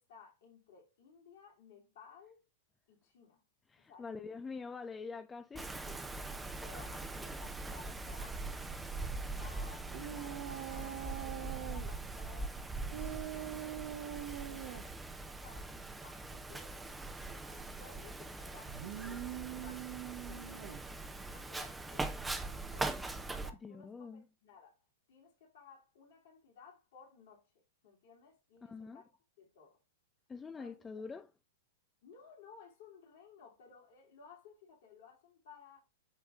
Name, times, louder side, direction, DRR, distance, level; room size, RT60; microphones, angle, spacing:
voice 1, 0.0-2.4 2.9-3.4 3.8-4.7 6.6-12.7 13.0-15.0 15.3-20.9 21.3-22.2 22.7-23.0 23.3-24.8 25.1-27.5 27.8-29.0 29.4-29.8 30.4-30.7 32.0-35.8, left 6 dB, 60° left, 2.9 m, -58 dB
voice 2, 3.7-6.2 23.6-24.2 28.6-29.0 30.3-31.3, left 4 dB, 15° left, 0.5 m, -45 dB
Wind, 5.6-23.5, right 2 dB, 10° right, 0.8 m, -42 dB
sound 1, 9.9-11.9 12.9-14.8 18.7-20.9, right 12 dB, 55° right, 0.8 m, -43 dB
8.2 x 3.6 x 3.7 m
hypercardioid pair, 100°, 0 cm